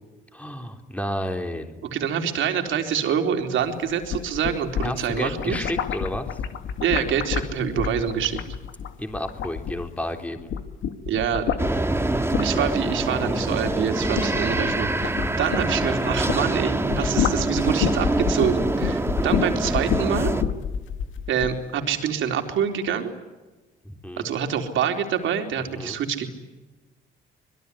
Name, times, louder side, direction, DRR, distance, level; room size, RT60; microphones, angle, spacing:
voice 1, 0.3-1.8 4.8-6.4 9.0-10.5 23.8-24.2 25.7-26.0, left 1 dB, 5° left, 5 dB, 3.6 m, -31 dB
voice 2, 1.9-5.6 6.8-8.4 11.1-11.6 12.4-20.3 21.3-23.1 24.2-26.3, right 8 dB, 75° right, 5 dB, 4.0 m, -26 dB
sound 1, 3.9-10.1 10.4-16.5 16.8-21.6, left 8 dB, 80° left, 2.3 m, -29 dB
sound 2, 11.6-20.4, right 2 dB, 10° right, 1.8 m, -25 dB
26.0 x 22.0 x 9.9 m, 1.2 s
cardioid pair, 90°, 20 cm